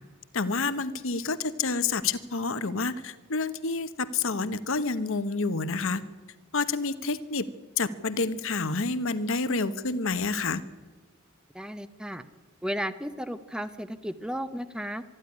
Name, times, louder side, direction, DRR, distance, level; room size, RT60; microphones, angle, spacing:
voice 1, 0.3-6.0 6.5-7.5 7.8-10.6, left 4 dB, 65° left, 13 dB, 1.2 m, -28 dB
voice 2, 11.5-12.2 12.6-15.0, equal, 5° right, 11 dB, 0.8 m, -34 dB
26.0 x 11.5 x 9.8 m, 1.4 s
head